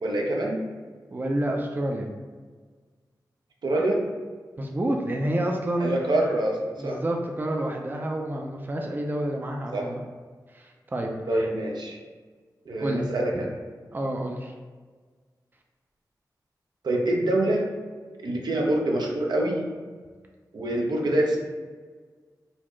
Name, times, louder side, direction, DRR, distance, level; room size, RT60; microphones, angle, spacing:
voice 1, 0.0-0.6 3.6-4.0 5.8-7.0 9.7-9.9 11.3-12.0 12.7-13.5 16.8-17.6 18.2-19.6 20.5-21.4, right 1 dB, 75° right, 0 dB, 0.6 m, -25 dB
voice 2, 1.1-2.1 4.6-5.9 6.8-10.0 10.5-11.1 11.4-11.5 12.8-13.1 13.3-13.4 13.9-14.5, right 1 dB, 25° right, 1 dB, 0.4 m, -29 dB
4.0 x 2.4 x 3.0 m, 1.5 s
cardioid pair, 60°, 7 cm